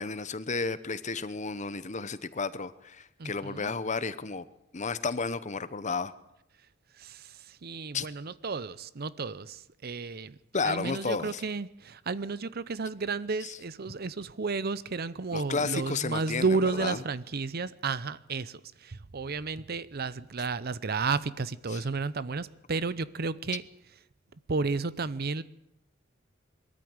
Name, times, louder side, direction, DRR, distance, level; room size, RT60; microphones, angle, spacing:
voice 1, 0.0-4.5 4.7-6.1 7.9-8.1 10.5-11.4 13.4-13.6 15.3-17.0 21.7-21.8, left 4 dB, 35° left, 0.9 m, -32 dB
voice 2, 3.2-3.7 7.0-7.3 7.6-10.4 10.6-23.6 24.5-25.4, right 4 dB, 50° right, 0.7 m, -32 dB
21.5 x 13.5 x 9.6 m
head